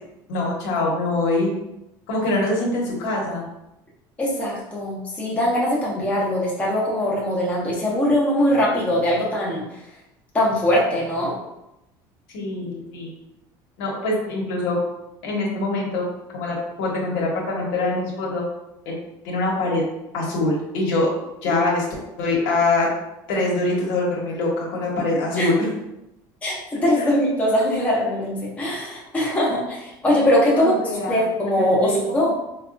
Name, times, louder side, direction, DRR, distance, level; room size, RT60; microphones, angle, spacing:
voice 1, 0.3-1.5 2.1-3.5 12.3-13.1 13.8-14.8 15.2-16.0 16.3-18.4 18.8-18.9 19.2-19.8 20.1-21.1 21.4-21.8 22.2-22.9 23.3-25.6 27.0-27.1 30.5-31.5 31.8-32.0, left 2 dB, 85° left, -3 dB, 1.1 m, -24 dB
voice 2, 4.2-9.6 10.3-11.3 21.5-21.6 25.4-25.5 26.4-32.3, left 1 dB, 15° left, -5 dB, 0.7 m, -21 dB
4.0 x 2.3 x 2.5 m, 0.89 s
cardioid pair, 160°, 9 cm